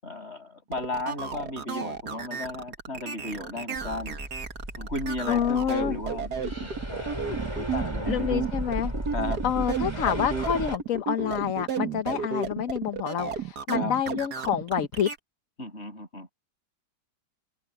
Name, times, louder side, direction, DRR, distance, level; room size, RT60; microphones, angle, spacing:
voice 1, 0.0-4.2 4.8-8.4 9.1-9.4 13.7-13.9 15.6-16.3, left 2 dB, 35° left, 7.1 m, -35 dB
sound 1, 0.7-15.2, right 6 dB, 65° right, 2.3 m, -32 dB
sound 2, 3.8-10.8, right 1 dB, 15° right, 6.9 m, -35 dB
voice 2, 5.3-5.9 8.1-8.9 9.4-15.1, left 9 dB, 55° left, 1.2 m, -27 dB
omnidirectional pair, 1.9 m